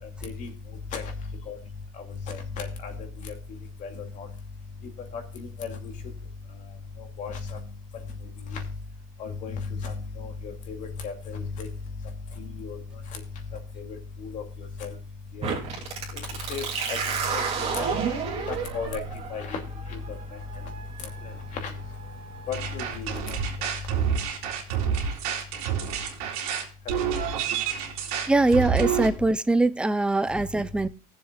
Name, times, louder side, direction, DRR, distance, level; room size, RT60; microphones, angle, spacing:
voice 1, 1.9-3.3 3.8-4.3 5.1-5.9 7.0-7.7 8.2-8.6 9.2-11.7 12.4-12.8 13.1-13.2 13.8-14.9 15.3-15.5 16.1-17.0 17.3-17.9 18.5-19.0 19.3-19.6 19.9-20.2 21.2-21.8 22.5-23.4 26.9-27.0, left 5 dB, 40° left, 2.6 m, -35 dB
sound 1, 15.4-22.9, right 6 dB, 35° right, 2.6 m, -32 dB
sound 2, 22.5-29.1, right 8 dB, 80° right, 2.6 m, -28 dB
voice 2, 28.3-30.9, right 2 dB, 5° right, 0.4 m, -22 dB
20.0 x 7.2 x 2.4 m
supercardioid pair, 140°, 19 cm